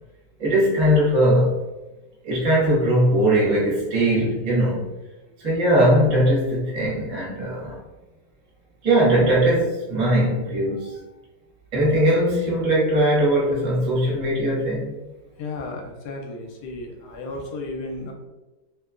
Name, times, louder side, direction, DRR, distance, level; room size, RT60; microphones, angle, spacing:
voice 1, 0.4-1.6 2.2-4.8 5.4-7.8 8.8-10.9 11.7-14.9, right 1 dB, 35° right, -5 dB, 0.6 m, -20 dB
voice 2, 15.4-18.1, left 2 dB, 75° left, 1 dB, 1.1 m, -33 dB
3.0 x 2.2 x 2.3 m, 1.1 s
omnidirectional pair, 1.9 m